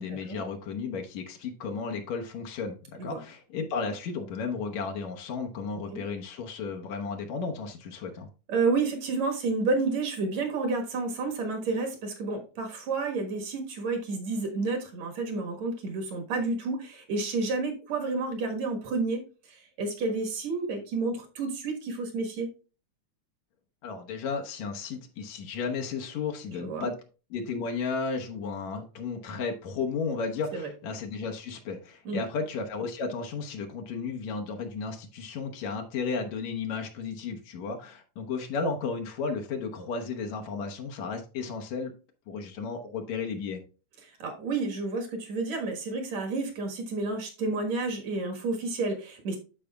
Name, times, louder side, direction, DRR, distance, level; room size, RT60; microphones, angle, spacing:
voice 1, 0.0-8.3 23.8-26.9 27.3-41.9 42.3-43.6, left 4 dB, 70° left, 3 dB, 2.2 m, -34 dB
voice 2, 8.5-22.5 26.5-26.9 30.5-30.7 32.1-32.2 44.0-49.4, right 3 dB, 65° right, 2 dB, 2.5 m, -30 dB
12.5 x 5.0 x 2.3 m, 0.34 s
omnidirectional pair, 3.5 m